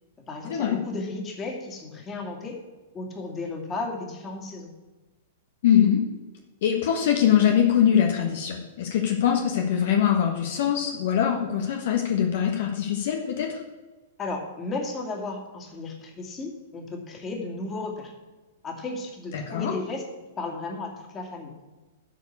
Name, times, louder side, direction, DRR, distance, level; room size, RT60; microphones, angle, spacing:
voice 1, 0.3-2.6 2.9-4.7 14.2-18.1 18.6-20.0 20.4-21.6, left 3 dB, 25° left, 1 dB, 2.5 m, -34 dB
voice 2, 5.6-6.0 6.6-13.6 19.3-19.7, left 9 dB, 65° left, 2 dB, 1.4 m, -23 dB
12.0 x 4.7 x 8.4 m, 1.2 s
hypercardioid pair, 120°, 0 cm